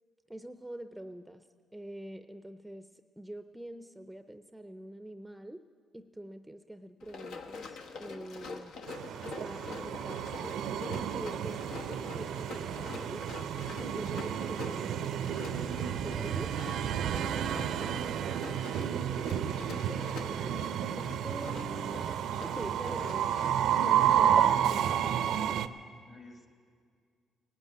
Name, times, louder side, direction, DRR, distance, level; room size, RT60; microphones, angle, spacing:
voice 1, 0.3-2.9 3.2-5.6 5.9-8.7 9.2-10.8 11.1-11.6 11.9-13.2 13.8-16.5 19.9-20.9 21.2-23.3 23.8-25.6, right 1 dB, 5° right, 9 dB, 0.5 m, -45 dB
Run, 7.0-23.7, left 4 dB, 85° left, 1.1 m, -46 dB
Train, 8.9-25.7, right 9 dB, 80° right, 0.5 m, -31 dB
voice 2, 17.3-18.9 24.1-24.2 26.1-26.5, left 2 dB, 45° left, 3 dB, 2.3 m, -54 dB
18.0 x 8.2 x 9.4 m, 2.1 s
cardioid pair, 90°, 0 cm